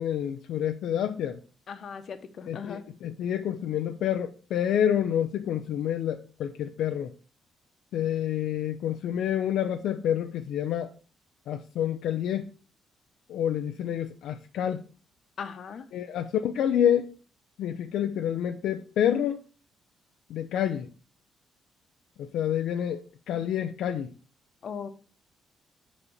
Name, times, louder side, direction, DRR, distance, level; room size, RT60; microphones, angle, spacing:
voice 1, 0.0-1.4 2.5-7.1 7.9-10.9 11.5-12.5 13.3-14.8 15.9-17.1 17.6-19.4 20.3-20.9 22.2-24.1, left 10 dB, 80° left, 0.5 m, -28 dB
voice 2, 1.7-2.8 15.4-15.9 24.6-24.9, left 6 dB, 55° left, 1.0 m, -38 dB
7.1 x 4.2 x 6.6 m
cardioid pair, 90°, 0 cm